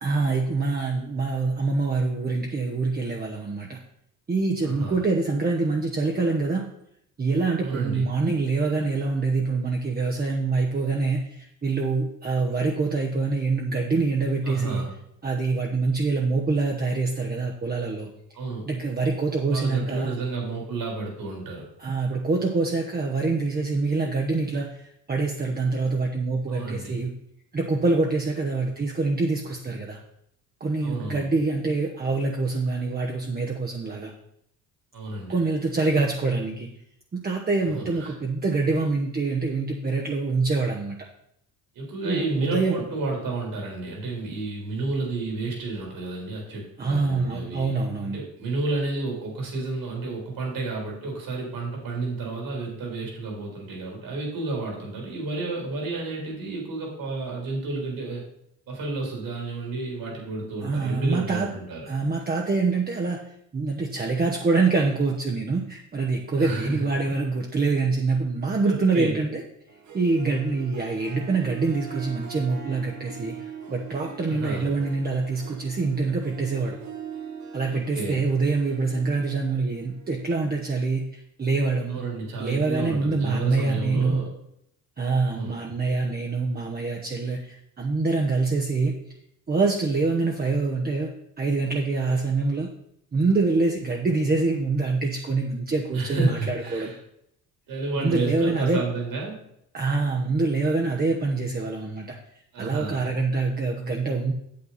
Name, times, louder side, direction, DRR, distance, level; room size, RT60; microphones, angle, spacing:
voice 1, 0.0-3.8 4.3-6.7 7.2-14.9 15.2-18.1 18.7-20.2 21.8-27.1 27.5-30.0 30.6-34.1 35.3-36.7 37.1-41.0 42.0-42.9 46.8-48.2 60.6-61.5 61.9-63.2 63.5-69.4 69.9-76.8 77.5-82.0 82.4-84.2 85.0-89.0 89.5-91.1 91.4-92.7 93.1-96.9 98.0-98.8 99.7-102.1 102.6-104.3, right 3 dB, 25° right, 1 dB, 1.0 m, -25 dB
voice 2, 4.6-5.0 7.6-8.1 14.4-14.9 18.3-18.7 19.5-21.7 26.5-27.0 30.8-31.3 34.9-35.4 37.7-38.1 41.8-58.2 58.7-61.9 66.4-66.9 68.6-69.2 74.3-74.7 77.7-78.2 81.9-84.3 85.3-85.6 95.9-97.0 97.7-99.4 102.5-103.1, right 3 dB, 70° right, -1 dB, 3.5 m, -31 dB
Harp, 69.7-80.9, right 8 dB, 55° right, 1.3 m, -41 dB
8.5 x 7.6 x 4.1 m, 0.76 s
cardioid pair, 105°, 35 cm